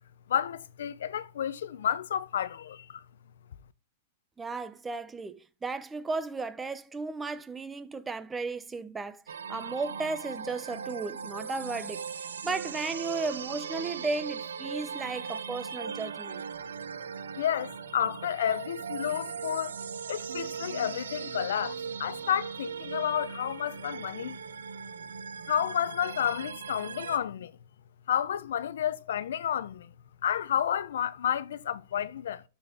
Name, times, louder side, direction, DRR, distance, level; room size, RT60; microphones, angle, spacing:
voice 1, 0.3-3.0 16.9-17.0 17.4-19.8 20.1-24.4 25.5-27.5 28.1-29.9 30.2-32.4, left 9 dB, 80° left, 0.6 m, -31 dB
voice 2, 4.4-12.0 12.4-16.4, right 3 dB, 15° right, 0.7 m, -35 dB
sound 1, 9.3-27.2, right 6 dB, 90° right, 0.6 m, -39 dB
12.5 x 4.4 x 3.5 m
hypercardioid pair, 125°, 0 cm